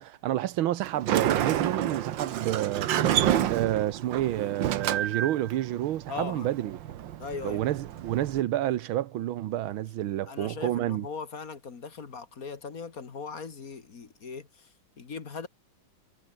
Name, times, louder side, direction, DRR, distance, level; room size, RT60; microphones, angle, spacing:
voice 1, 0.0-2.9 3.5-6.8 7.4-11.0, right 13 dB, 85° right, 1.7 m, -29 dB
Sliding door, 0.8-8.4, right 11 dB, 70° right, 1.7 m, -29 dB
voice 2, 6.1-6.5 7.2-7.6 10.2-15.5, left 5 dB, 45° left, 2.1 m, -39 dB
omnidirectional pair, 2.2 m